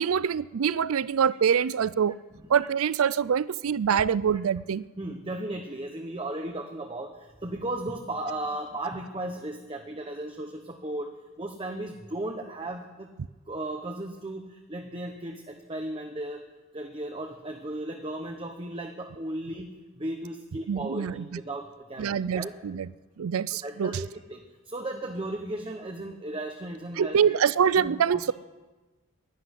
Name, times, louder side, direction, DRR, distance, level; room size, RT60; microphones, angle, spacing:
voice 1, 0.0-2.1 2.5-4.8 20.7-21.2 22.0-22.9 23.2-24.0 27.0-28.3, right 7 dB, 80° right, 20 dB, 0.4 m, -25 dB
voice 2, 5.0-11.1 11.4-13.1 13.5-16.4 16.7-22.5 23.6-27.4 27.8-28.3, right 1 dB, 25° right, 4 dB, 0.9 m, -36 dB
11.5 x 11.5 x 9.7 m, 1.2 s
head